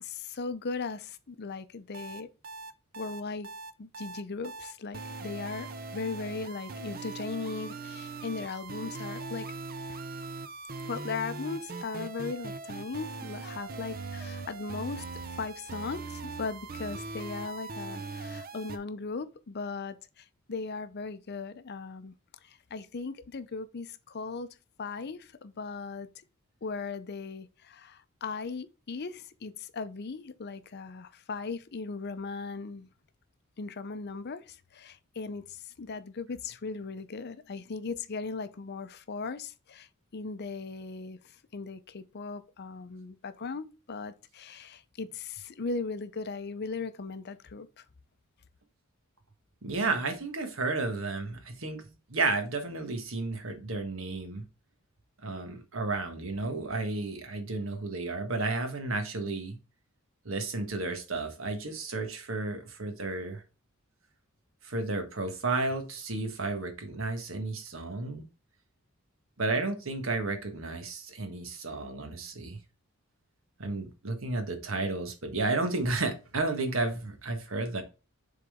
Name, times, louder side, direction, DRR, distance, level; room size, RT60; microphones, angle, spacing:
voice 1, 0.0-2.3 3.0-3.5 3.8-9.5 9.9-10.0 10.8-15.0 15.3-22.1 22.4-24.5 24.8-26.1 26.6-32.9 33.6-47.8, left 4 dB, 50° left, 0.6 m, -38 dB
sound 1, 1.9-18.8, right 3 dB, 45° right, 0.7 m, -40 dB
voice 2, 49.6-51.8 52.1-54.5 55.2-59.6 60.2-63.4 64.6-68.2 69.4-72.6 73.6-77.8, right 3 dB, 70° right, 1.4 m, -32 dB
6.8 x 3.9 x 3.5 m
head